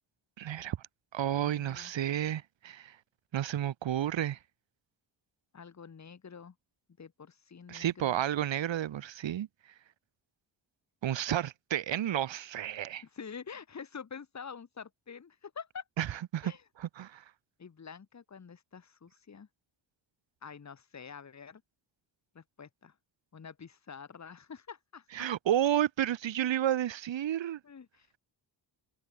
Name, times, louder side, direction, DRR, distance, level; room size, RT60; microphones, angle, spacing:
voice 1, 0.4-0.8 1.1-3.0 3.3-4.4 7.7-9.5 11.0-13.0 16.0-16.5 16.8-17.2 25.1-27.6, right 11 dB, 80° right, 2.0 m, -31 dB
voice 2, 1.3-1.9 5.5-6.5 7.0-8.2 13.0-15.8 16.4-16.6 17.6-19.5 20.4-21.6 22.3-22.9 23.3-25.3 27.6-28.2, left 6 dB, 40° left, 4.4 m, -47 dB
wide cardioid pair, 165°, 44 cm